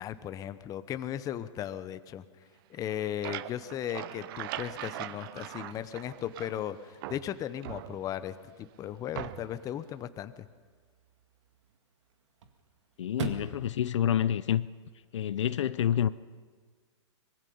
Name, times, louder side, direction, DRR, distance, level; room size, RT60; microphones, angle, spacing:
voice 1, 0.0-2.2 2.7-10.5, left 10 dB, 25° left, 0.8 m, -36 dB
sound 1, 2.8-6.7 7.0-8.4 9.1-9.7, right 13 dB, 50° right, 0.8 m, -41 dB
Chirp tweet / Car / Slam, 5.3-15.3, right 5 dB, 70° right, 2.0 m, -47 dB
voice 2, 13.0-14.7 15.1-16.1, left 10 dB, 75° left, 0.6 m, -28 dB
24.0 x 21.5 x 5.5 m
hypercardioid pair, 135°, 16 cm